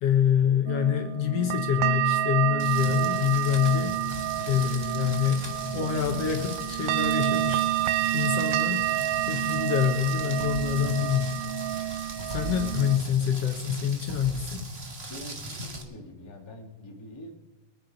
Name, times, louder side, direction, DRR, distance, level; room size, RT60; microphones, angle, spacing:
voice 1, 0.0-4.0 4.5-7.6 8.1-8.9 9.3-11.4 12.2-14.6, left 9 dB, 65° left, 5 dB, 1.7 m, -26 dB
sound 1, 0.7-13.0, right 14 dB, 80° right, 2.1 m, -29 dB
Rain, 2.6-15.8, right 1 dB, 55° right, 0.7 m, -38 dB
Rattle, 2.9-3.6 4.2-4.8 5.7-6.1 6.8-7.5 7.7-8.5 9.0-10.8 11.4-12.7 13.1-14.0, right 2 dB, 25° right, 1.2 m, -56 dB
voice 2, 15.1-17.3, left 1 dB, 20° left, 1 dB, 0.6 m, -44 dB
22.5 x 9.1 x 5.1 m, 1.2 s
omnidirectional pair, 3.7 m